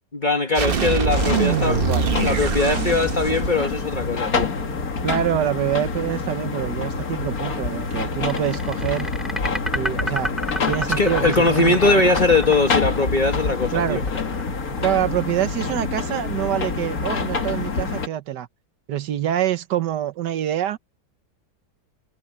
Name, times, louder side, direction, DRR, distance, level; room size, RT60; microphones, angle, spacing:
voice 1, 0.1-4.5 11.0-14.0, left 2 dB, 30° left, 1.4 m, -21 dB
sound 1, 0.6-4.3, right 6 dB, 40° right, 1.0 m, -24 dB
sound 2, 1.0-18.1, left 4 dB, 55° left, 2.3 m, -27 dB
voice 2, 1.7-2.1 5.0-9.1 9.7-10.3 10.7-12.0 13.7-14.0 14.8-18.5 18.9-20.8, right 11 dB, 75° right, 1.5 m, -25 dB
sound 3, 8.3-15.4, equal, ahead, 1.6 m, -30 dB
omnidirectional pair, 1.9 m